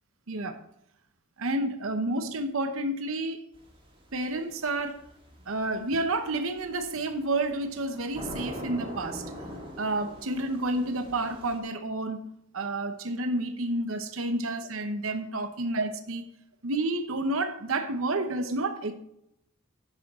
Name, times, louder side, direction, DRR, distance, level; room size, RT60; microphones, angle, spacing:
voice 1, 0.3-0.6 1.4-3.4 4.1-5.0 5.5-9.3 9.8-12.3 12.5-16.2 16.6-18.9, right 2 dB, 70° right, 0.9 m, -30 dB
sound 1, 3.5-11.6, equal, 25° right, 2.3 m, -43 dB
11.0 x 8.8 x 3.7 m
head